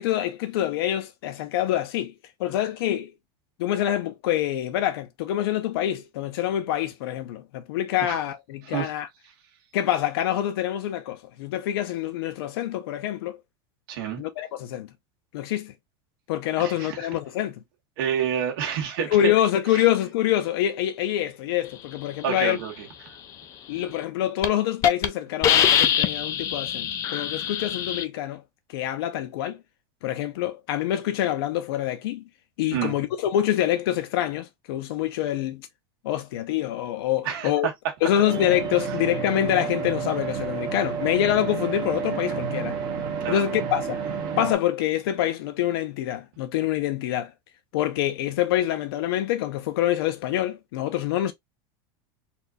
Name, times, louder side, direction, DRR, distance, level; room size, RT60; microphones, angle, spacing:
voice 1, 0.0-2.1 2.4-3.1 3.6-9.1 9.7-13.4 14.2-14.9 15.3-15.7 16.3-17.6 19.1-22.6 23.7-28.4 28.7-29.6 30.0-32.2 32.6-35.7 36.0-37.7 38.0-42.8 43.3-44.0 44.4-47.3 47.7-51.3, left 12 dB, 70° left, 0.6 m, -26 dB
voice 2, 13.9-14.2 16.6-17.0 18.0-19.2 19.7-19.9 22.2-22.7 32.7-33.0 37.2-37.9 43.2-43.4, right 9 dB, 60° right, 1.6 m, -28 dB
Hiss, 23.8-24.0 24.4-24.5 24.8-25.1 25.4-28.0, left 9 dB, 25° left, 0.4 m, -22 dB
sound 1, 38.3-44.6, right 6 dB, 35° right, 1.1 m, -30 dB
4.3 x 2.5 x 2.5 m
supercardioid pair, 170°, 13 cm